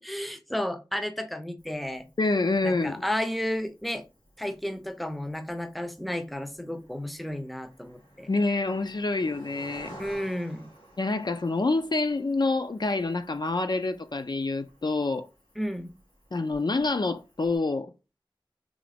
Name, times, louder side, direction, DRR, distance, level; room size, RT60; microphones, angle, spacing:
voice 1, 0.0-2.0 2.6-4.0 4.4-8.3 10.0-10.7 15.6-16.0, equal, ahead, 0.5 m, -32 dB
Cricket, 1.6-17.6, right 1 dB, 80° left, 1.9 m, -53 dB
voice 2, 2.2-3.0 8.3-10.0 11.0-15.3 16.3-17.9, left 3 dB, 55° left, 0.4 m, -27 dB
3.7 x 2.9 x 3.4 m
wide cardioid pair, 50°, 9 cm